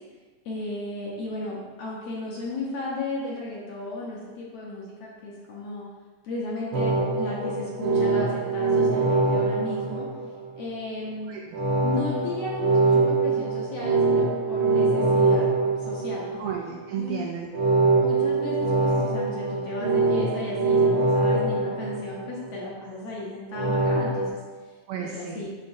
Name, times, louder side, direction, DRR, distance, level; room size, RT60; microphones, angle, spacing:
voice 1, 0.4-5.8 6.2-10.1 10.6-11.3 11.8-15.5 15.8-16.4 16.9-17.2 18.0-24.4 25.0-25.5, left 2 dB, 65° left, -5 dB, 1.7 m, -34 dB
sound 1, 6.7-10.6 11.5-16.6 17.5-22.6 23.5-24.3, right 3 dB, 60° right, 1.5 m, -23 dB
voice 2, 11.3-11.6 16.4-17.9 24.9-25.5, right 7 dB, 85° right, 0 dB, 1.5 m, -34 dB
10.5 x 3.7 x 2.6 m, 1.4 s
omnidirectional pair, 3.7 m